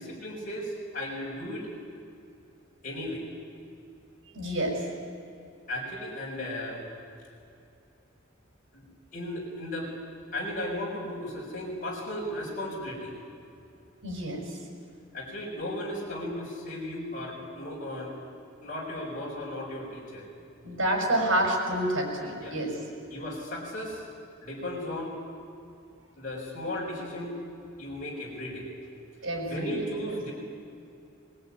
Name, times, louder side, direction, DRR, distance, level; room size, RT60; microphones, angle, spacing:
voice 1, 0.0-1.7 2.8-3.3 5.7-6.8 8.7-9.9 10.3-13.1 15.1-18.1 18.6-20.3 22.4-22.6 23.1-24.0 24.4-25.1 26.2-27.4 27.8-28.7 29.5-30.3, left 1 dB, 45° left, -4 dB, 5.0 m, -35 dB
voice 2, 4.3-4.8 14.0-14.4 20.6-22.7 29.2-29.8, right 1 dB, 85° right, 1 dB, 6.0 m, -28 dB
22.5 x 20.5 x 9.6 m, 2.5 s
head